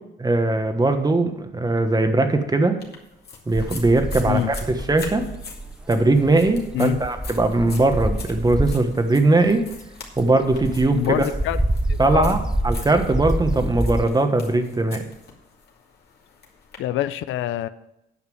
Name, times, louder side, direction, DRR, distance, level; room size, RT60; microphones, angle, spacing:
voice 1, 0.2-2.8 3.5-5.2 5.9-9.6 10.2-11.3 12.0-12.4 12.6-15.0, right 2 dB, 20° right, 7 dB, 1.3 m, -20 dB
sound 1, 2.8-16.8, left 4 dB, 55° left, 2.3 m, -43 dB
sound 2, 3.5-9.0 9.5-14.0, right 1 dB, 5° right, 0.5 m, -27 dB
voice 2, 10.9-11.6 11.9-12.4 16.8-17.7, left 13 dB, 85° left, 14 dB, 0.5 m, -25 dB
9.6 x 5.7 x 7.7 m, 0.87 s
cardioid pair, 90°, 20 cm